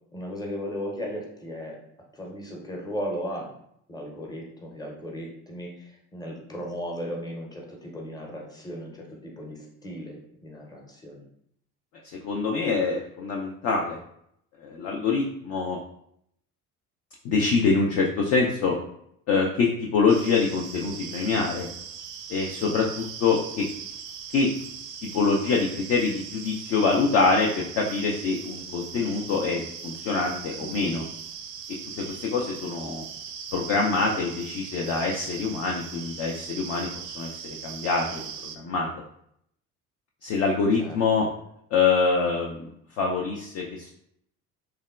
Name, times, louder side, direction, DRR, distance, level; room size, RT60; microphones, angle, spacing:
voice 1, 0.1-1.8 2.1-3.5 3.9-11.2 30.6-31.0 40.8-41.0, equal, 10° left, -1 dB, 0.7 m, -36 dB
voice 2, 12.2-14.0 14.6-15.8 17.2-18.8 19.3-21.7 22.3-23.6 24.3-24.5 25.1-31.0 32.0-33.0 33.5-36.9 37.1-38.9 40.2-41.3 41.7-42.7 43.0-43.9, left 4 dB, 35° left, 0 dB, 0.4 m, -25 dB
sound 1, 20.1-38.6, right 7 dB, 45° right, 0.4 m, -40 dB
3.4 x 2.2 x 2.3 m, 0.72 s
figure-of-eight pair, 50°, 45 cm